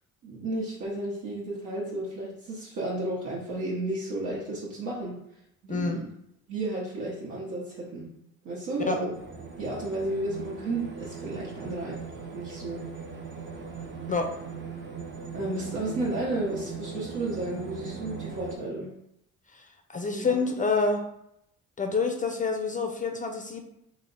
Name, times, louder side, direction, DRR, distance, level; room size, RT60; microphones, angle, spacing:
voice 1, 0.2-5.2 5.6-6.1 6.5-8.1 8.4-9.1 9.6-12.0 12.3-12.8 15.3-18.9 20.1-20.4, right 2 dB, 70° right, -6 dB, 0.9 m, -32 dB
voice 2, 5.7-6.0 8.8-9.0 14.1-14.3 19.9-21.0 21.8-23.6, left 4 dB, 25° left, 4 dB, 0.4 m, -27 dB
sound 1, 9.1-18.6, right 5 dB, 40° right, 0.7 m, -40 dB
3.2 x 2.1 x 3.9 m, 0.79 s
cardioid pair, 90°, 30 cm